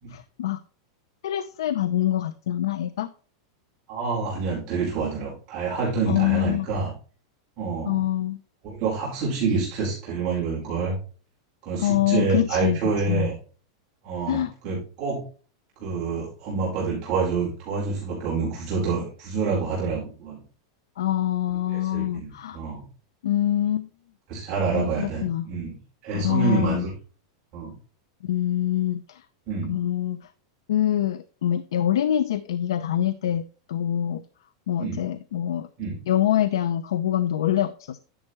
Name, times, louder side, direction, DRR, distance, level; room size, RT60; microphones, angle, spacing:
voice 1, 0.1-0.6 1.2-3.1 6.1-6.7 7.9-8.4 11.8-12.8 13.1-13.3 14.3-14.5 21.0-22.6 23.2-23.9 24.7-25.4 26.1-26.8 28.2-29.2 29.7-30.2 30.7-34.2 34.7-35.7 36.1-38.0, left 12 dB, 90° left, 13 dB, 0.7 m, -25 dB
voice 2, 3.9-6.9 7.6-8.0 8.6-10.9 11.6-13.3 14.0-15.2 15.8-20.4 21.7-22.8 24.3-25.8 26.0-26.9 27.5-27.7 29.5-29.7 34.8-35.0 35.8-36.0, right 4 dB, 35° right, -6 dB, 4.8 m, -27 dB
11.0 x 7.4 x 3.2 m, 0.39 s
supercardioid pair, 170°, 2 cm